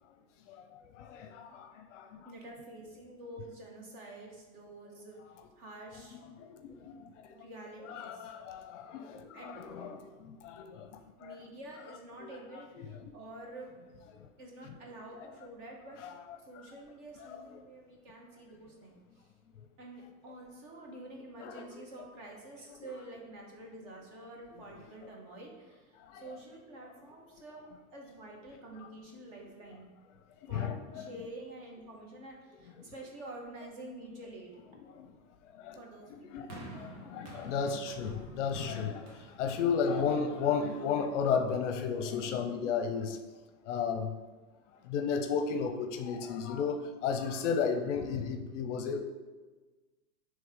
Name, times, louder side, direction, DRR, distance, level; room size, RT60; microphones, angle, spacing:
voice 1, 0.5-2.3 6.4-7.4 7.8-11.4 12.2-12.3 12.8-13.1 14.1-14.3 16.0-16.1 17.3-17.4 21.4-21.7 24.5-24.6 26.0-26.2 30.4-31.1 32.8-32.9 34.9-35.1 35.5-35.8 36.1-43.2 43.6-44.2 44.8-49.0, left 6 dB, 55° left, 6 dB, 0.6 m, -34 dB
voice 2, 2.2-6.2 7.3-8.3 9.3-9.7 11.2-13.7 14.4-16.1 16.5-19.3 19.8-29.9 30.5-34.6 35.7-36.6, right 1 dB, 40° right, -1 dB, 1.5 m, -48 dB
sound 1, 36.5-40.8 41.6-41.7, right 3 dB, 70° right, 1.6 m, -49 dB
8.6 x 3.3 x 3.7 m, 1.3 s
supercardioid pair, 150°, 45 cm